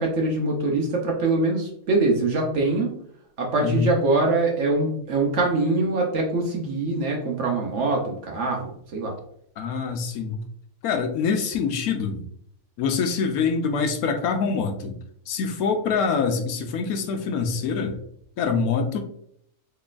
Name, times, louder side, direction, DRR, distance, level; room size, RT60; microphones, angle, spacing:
voice 1, 0.0-3.0 3.4-9.1, right 2 dB, 60° right, 0 dB, 0.8 m, -23 dB
voice 2, 3.6-3.9 9.6-10.4 10.8-12.2 12.8-14.9 15.3-18.0 18.4-19.0, left 5 dB, 75° left, 5 dB, 1.0 m, -25 dB
3.9 x 3.2 x 2.4 m, 0.67 s
omnidirectional pair, 1.7 m